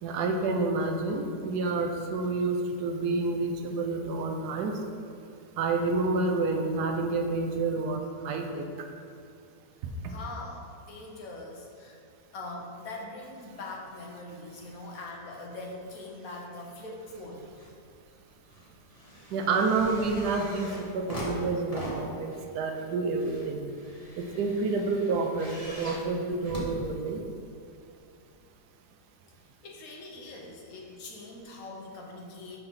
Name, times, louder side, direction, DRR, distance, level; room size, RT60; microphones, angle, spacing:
voice 1, 0.0-4.8 5.6-8.9 19.3-20.7 20.9-23.6 24.2-27.2, right 3 dB, 80° right, 4 dB, 1.1 m, -29 dB
voice 2, 10.1-12.0 12.3-17.5 29.6-32.6, left 2 dB, 65° left, -1 dB, 1.2 m, -42 dB
sound 1, 17.0-17.8 18.1-27.5 28.3-28.4, equal, 25° left, 1.0 m, -41 dB
5.7 x 3.3 x 5.6 m, 2.6 s
omnidirectional pair, 1.8 m